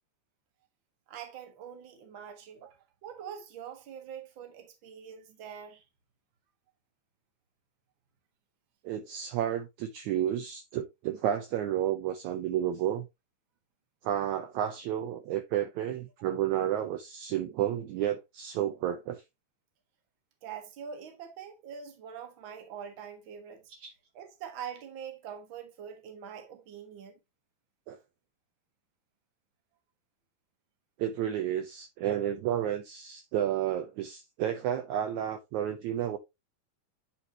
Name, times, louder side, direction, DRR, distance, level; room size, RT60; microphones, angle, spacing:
voice 1, 1.1-2.8 3.0-5.8 20.4-23.6 24.1-27.2, right 8 dB, 50° right, 1.5 m, -44 dB
voice 2, 8.8-13.1 14.0-19.2 23.7-23.9 27.9-28.0 31.0-36.2, right 11 dB, 80° right, 1.7 m, -31 dB
9.8 x 4.2 x 2.8 m
omnidirectional pair, 4.0 m